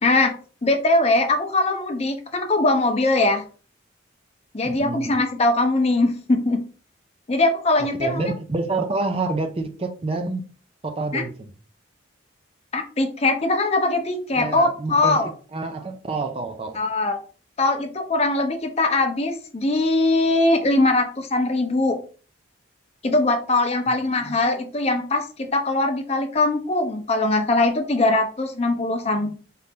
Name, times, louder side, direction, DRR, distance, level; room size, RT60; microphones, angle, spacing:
voice 1, 0.0-0.3 0.6-3.4 4.5-6.6 7.3-8.2 11.1-11.2 12.7-15.3 16.7-17.2 17.6-22.0 23.0-29.3, left 2 dB, 30° left, 0.6 m, -21 dB
voice 2, 4.6-5.1 8.0-10.4 10.8-11.3 14.3-15.2 15.5-16.8 24.2-24.4, right 3 dB, 30° right, 0.4 m, -27 dB
4.2 x 2.5 x 3.5 m
head